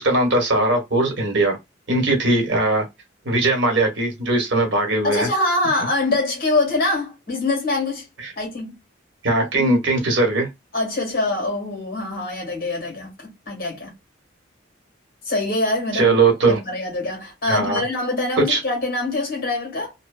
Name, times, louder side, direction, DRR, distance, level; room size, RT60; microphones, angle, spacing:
voice 1, 0.0-1.6 1.9-2.8 3.2-5.3 8.2-8.3 9.2-10.5 15.9-16.6 17.5-17.8 18.5-18.6, right 2 dB, 70° right, 1.2 m, -19 dB
voice 2, 5.0-8.0 8.4-8.7 10.7-13.9 15.2-16.1 16.5-19.9, left 2 dB, 50° left, 1.5 m, -24 dB
2.8 x 2.1 x 2.3 m
head